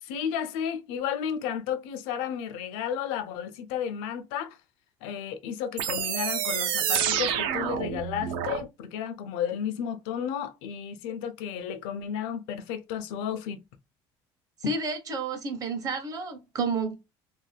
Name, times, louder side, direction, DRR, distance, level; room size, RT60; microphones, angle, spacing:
voice 1, 0.0-4.6 5.0-13.6 14.6-14.7, left 8 dB, 85° left, 0.5 m, -33 dB
sound 1, 5.8-8.6, right 8 dB, 70° right, 0.6 m, -28 dB
voice 2, 14.7-17.0, right 4 dB, 40° right, 0.8 m, -30 dB
2.6 x 2.1 x 3.2 m
cardioid pair, 125°, 10 cm